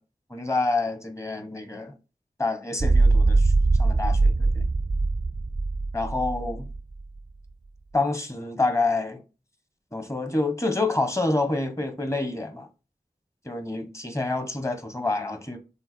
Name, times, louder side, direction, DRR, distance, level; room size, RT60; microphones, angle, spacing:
voice 1, 0.3-1.9 2.4-3.5 3.8-4.5 5.9-6.7 7.9-9.2 9.9-12.7 13.4-15.6, left 2 dB, 20° left, 1.3 m, -27 dB
sound 1, 2.8-7.0, right 3 dB, 30° right, 0.4 m, -22 dB
5.7 x 3.8 x 4.4 m
wide cardioid pair, 45°, 15 cm